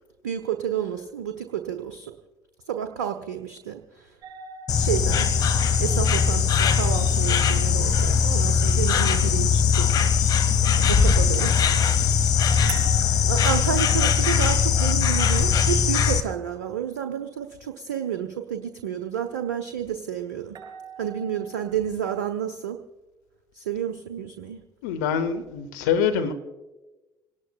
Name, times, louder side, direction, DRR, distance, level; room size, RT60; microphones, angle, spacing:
voice 1, 0.2-2.1 2.7-4.1 4.7-5.3 5.8-9.9 10.9-11.5 13.3-20.6 21.0-22.8 23.5-24.6, right 9 dB, 75° right, 7 dB, 0.8 m, -30 dB
sound 1, 4.2-9.2 12.7-16.8 20.6-21.8, right 5 dB, 45° right, 5.2 m, -44 dB
Insect, 4.7-16.2, left 7 dB, 40° left, 1.5 m, -20 dB
voice 2, 24.8-26.3, left 7 dB, 70° left, 8 dB, 0.9 m, -24 dB
26.5 x 18.5 x 2.3 m, 1.1 s
figure-of-eight pair, 55°, 10 cm